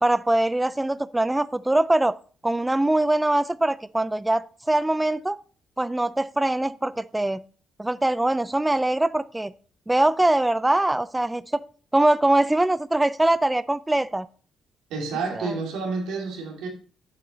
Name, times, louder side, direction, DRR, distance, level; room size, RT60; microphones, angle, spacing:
voice 1, 0.0-2.2 2.4-5.4 5.8-7.4 7.8-9.5 9.9-11.6 11.9-14.3 15.3-15.5, right 1 dB, 10° right, 0.3 m, -22 dB
voice 2, 14.9-16.7, right 4 dB, 90° right, 2.5 m, -29 dB
8.2 x 7.0 x 3.9 m
cardioid pair, 90°, 0 cm